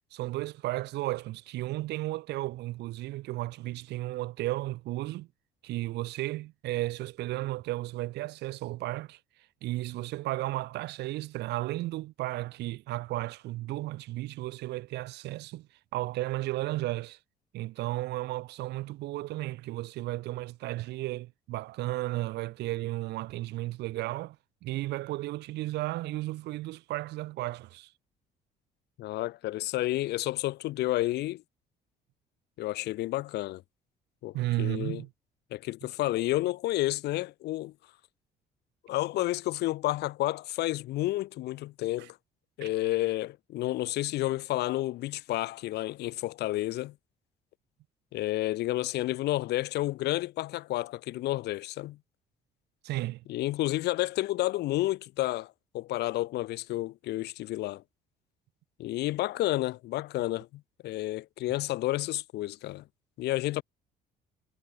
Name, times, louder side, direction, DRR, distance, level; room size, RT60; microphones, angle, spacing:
voice 1, 0.1-5.3 5.6-9.2 9.6-17.2 17.5-24.4 24.6-27.9 34.3-35.1 42.0-42.1 42.6-42.7 52.8-53.2, right 17 dB, 80° right, 6.1 m, -34 dB
voice 2, 29.0-31.4 32.6-33.6 34.2-35.0 35.5-37.7 38.9-42.2 42.6-46.9 48.1-52.0 53.3-57.8 58.8-62.8 63.2-63.6, left 16 dB, 80° left, 2.9 m, -30 dB
cardioid pair, 110°, 17 cm